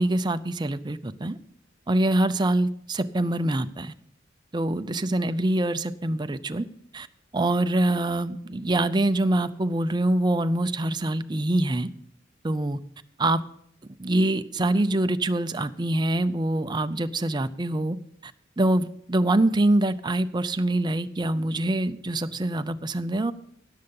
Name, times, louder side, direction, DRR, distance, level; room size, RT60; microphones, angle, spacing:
voice 1, 0.0-1.4 1.9-3.9 4.5-6.7 6.9-7.1 7.3-11.9 12.4-12.8 13.2-13.4 14.0-18.0 18.2-18.3 18.6-23.3, right 1 dB, 20° right, 10 dB, 0.5 m, -24 dB
17.5 x 6.7 x 5.4 m, 0.68 s
head